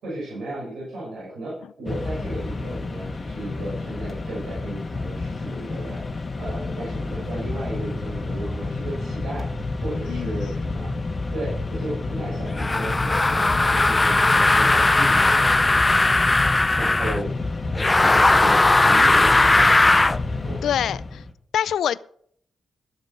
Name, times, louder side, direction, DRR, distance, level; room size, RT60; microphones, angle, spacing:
voice 1, 0.0-6.0 6.4-9.6 9.8-10.9 11.3-16.0 16.7-17.3 18.0-20.0 20.4-20.6, right 1 dB, 85° right, -6 dB, 5.9 m, -34 dB
Mechanisms, 1.9-21.3, left 3 dB, 35° left, 1.7 m, -29 dB
voice 2, 10.1-10.5 20.6-21.2 21.5-22.0, left 9 dB, 85° left, 18 dB, 0.4 m, -25 dB
sound 1, 12.6-17.2 17.7-20.2, left 2 dB, 20° left, 0.5 m, -18 dB
14.0 x 7.8 x 5.8 m, 0.65 s
cardioid pair, 80°, 0 cm